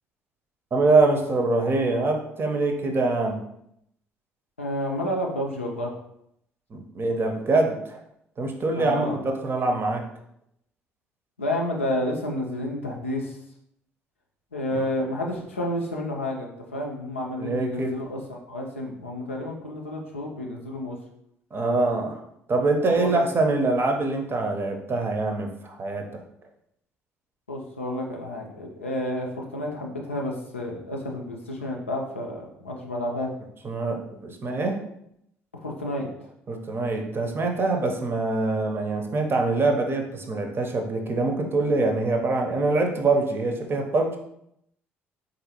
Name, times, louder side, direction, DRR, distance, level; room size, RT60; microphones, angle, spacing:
voice 1, 0.7-3.4 6.7-8.0 8.4-10.1 14.7-14.8 17.4-18.0 21.5-22.2 22.5-26.2 33.6-34.8 36.5-44.2, right 3 dB, 35° right, 3 dB, 0.6 m, -24 dB
voice 2, 4.6-6.0 8.7-9.2 11.4-13.4 14.5-21.0 22.9-23.1 27.5-33.3 35.6-36.1, left 1 dB, 85° left, -1 dB, 0.4 m, -30 dB
3.9 x 2.6 x 2.8 m, 0.76 s
figure-of-eight pair, 50°, 7 cm